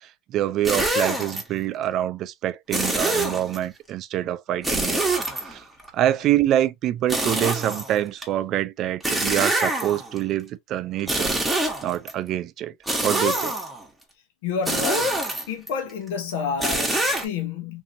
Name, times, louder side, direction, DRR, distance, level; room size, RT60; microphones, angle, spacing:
voice 1, 0.0-5.0 5.5-5.6 5.9-11.4 11.8-12.7 13.0-13.5, right 12 dB, 50° right, 0.4 m, -25 dB
sound 1, 0.6-1.4 2.7-3.6 4.6-5.9 7.1-8.2 9.0-10.2 11.0-12.1 12.9-13.8 14.7-15.7 16.6-17.2, right 1 dB, 5° right, 1.1 m, -25 dB
voice 2, 14.4-15.1 15.5-17.8, left 6 dB, 85° left, 0.8 m, -29 dB
2.9 x 2.7 x 2.6 m
supercardioid pair, 115°, 0 cm